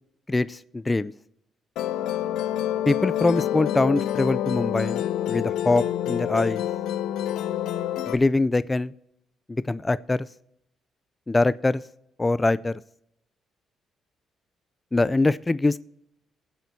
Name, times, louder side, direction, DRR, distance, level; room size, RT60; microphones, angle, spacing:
voice 1, 0.3-1.1 2.9-6.6 8.1-8.9 9.5-10.3 11.3-11.8 12.2-12.7 14.9-15.8, left 2 dB, 20° left, 16 dB, 0.3 m, -23 dB
Musical instrument, 1.8-8.2, left 11 dB, 85° left, 0.4 m, -27 dB
20.0 x 8.0 x 2.8 m, 0.78 s
cardioid pair, 90°, 0 cm